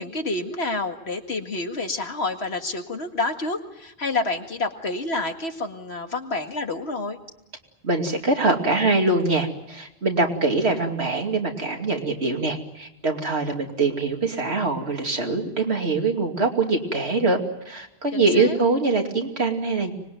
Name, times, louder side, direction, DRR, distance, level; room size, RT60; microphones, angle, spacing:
voice 1, 0.0-7.2 18.1-18.6, left 2 dB, 80° left, 5 dB, 2.3 m, -28 dB
voice 2, 7.8-17.4 17.7-19.9, right 3 dB, 85° right, 3 dB, 3.0 m, -23 dB
25.0 x 21.0 x 9.3 m, 0.88 s
omnidirectional pair, 1.1 m